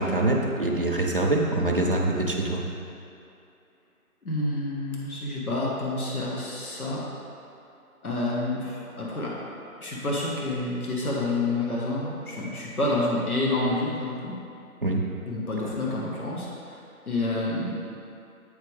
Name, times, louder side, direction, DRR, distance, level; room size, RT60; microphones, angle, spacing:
voice 1, 0.0-2.6 14.8-15.0, right 2 dB, 40° right, -2 dB, 0.6 m, -24 dB
voice 2, 4.2-7.0 8.0-9.4 9.8-14.4 15.3-16.8 17.1-17.8, left 2 dB, 75° left, -5 dB, 1.5 m, -28 dB
8.0 x 4.9 x 3.3 m, 2.6 s
figure-of-eight pair, 165°, 44 cm